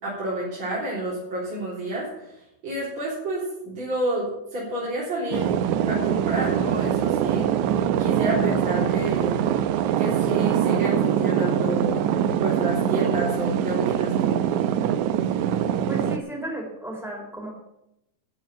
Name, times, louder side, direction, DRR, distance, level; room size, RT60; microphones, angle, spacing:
voice 1, 0.0-2.3 2.6-5.5 5.9-7.6 8.0-9.4 10.0-12.0 12.4-14.4, right 1 dB, 40° right, -8 dB, 4.5 m, -29 dB
sound 1, 5.3-16.2, right 9 dB, 80° right, 2.0 m, -23 dB
voice 2, 15.9-17.5, right 1 dB, ahead, -1 dB, 3.9 m, -33 dB
13.0 x 6.2 x 9.2 m, 0.84 s
omnidirectional pair, 3.5 m